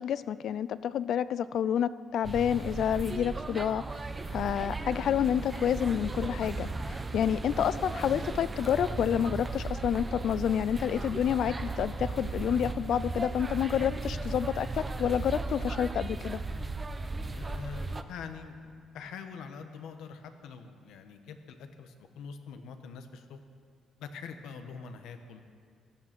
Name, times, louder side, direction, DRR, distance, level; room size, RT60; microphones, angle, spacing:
voice 1, 0.0-3.8 4.3-16.4, left 9 dB, 70° left, 16 dB, 0.4 m, -29 dB
sound 1, 2.2-18.0, right 3 dB, 25° right, 0.8 m, -36 dB
voice 2, 17.3-23.4 24.0-25.4, left 5 dB, 85° left, 7 dB, 1.1 m, -44 dB
15.5 x 11.0 x 6.0 m, 2.2 s
cardioid pair, 90°, 0 cm